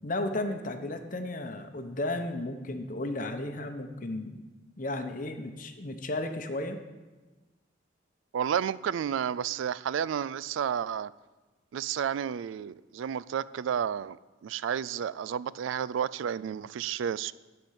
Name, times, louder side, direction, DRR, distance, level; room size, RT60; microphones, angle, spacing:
voice 1, 0.0-4.4 4.8-6.8, left 2 dB, 45° left, 7 dB, 0.8 m, -34 dB
voice 2, 8.3-11.1 11.7-14.2 14.4-17.3, right 8 dB, 90° right, 19 dB, 0.3 m, -31 dB
11.5 x 4.4 x 8.1 m, 1.2 s
head